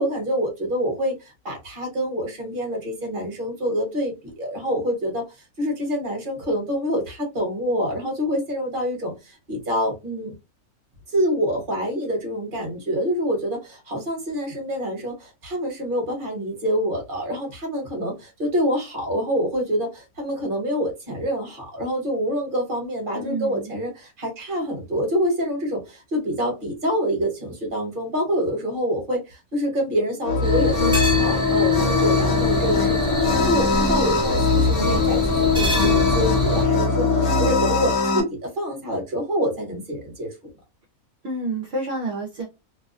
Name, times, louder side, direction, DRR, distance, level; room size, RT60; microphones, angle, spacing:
voice 1, 0.0-5.3 5.6-10.3 11.1-40.3, equal, 40° right, 1 dB, 1.1 m, -26 dB
voice 2, 23.1-23.7 41.2-42.4, right 2 dB, 55° right, 0 dB, 0.8 m, -29 dB
sound 1, 30.2-38.2, left 4 dB, 75° left, 1.0 m, -20 dB
sound 2, 30.4-36.6, equal, 5° right, 0.5 m, -28 dB
2.7 x 2.1 x 2.4 m, 0.24 s
omnidirectional pair, 1.6 m